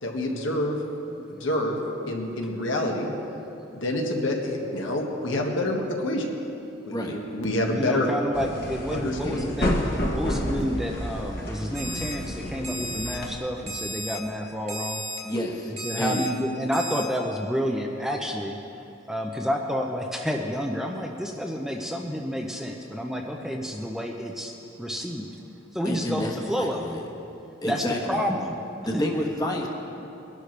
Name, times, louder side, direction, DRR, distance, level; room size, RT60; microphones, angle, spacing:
voice 1, 0.0-0.8 1.3-1.8 2.1-3.1 3.7-6.3 6.9-8.1 8.9-9.4, left 1 dB, 75° left, 0 dB, 1.6 m, -27 dB
voice 2, 7.7-15.0 15.8-18.6 19.1-24.5 24.8-25.3 25.7-27.0 27.6-28.6 28.9-29.0, equal, ahead, 1 dB, 0.6 m, -29 dB
sound 1, 8.3-13.3, equal, 50° left, 1.4 m, -30 dB
Alarm, 11.7-12.1 12.6-13.2 13.7-14.2 14.7-15.2 15.8-16.3 16.7-17.0, right 1 dB, 30° right, 1.6 m, -34 dB
voice 3, 15.2-16.2 25.8-27.0 27.6-28.2 28.8-29.7, left 1 dB, 20° left, 0 dB, 1.3 m, -29 dB
21.5 x 11.5 x 3.3 m, 2.8 s
head